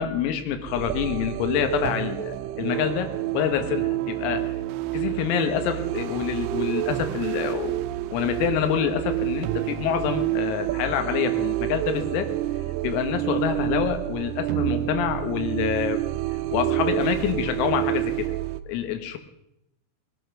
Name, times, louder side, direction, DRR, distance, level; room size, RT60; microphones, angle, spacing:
voice 1, 0.0-4.5 4.9-7.8 8.1-12.3 12.8-16.0 16.5-18.3 18.7-19.2, left 9 dB, 85° left, 7 dB, 3.9 m, -27 dB
sound 1, 0.7-18.6, right 15 dB, 90° right, 2.5 m, -28 dB
21.0 x 10.0 x 6.0 m, 0.84 s
omnidirectional pair, 6.0 m